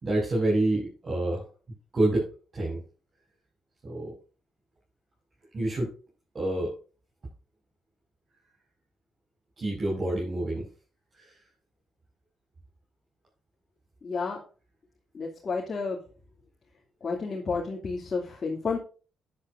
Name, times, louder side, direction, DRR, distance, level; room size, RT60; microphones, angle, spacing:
voice 1, 0.0-1.4 1.9-2.2 2.5-2.8 3.8-4.1 5.5-5.9 6.3-6.7 9.6-10.6 11.1-11.3, right 1 dB, 35° right, -4 dB, 6.0 m, -27 dB
voice 2, 14.0-14.4 15.1-16.0 17.0-18.8, left 4 dB, 40° left, -2 dB, 2.8 m, -31 dB
12.0 x 10.0 x 2.7 m, 0.36 s
cardioid pair, 90°, 0 cm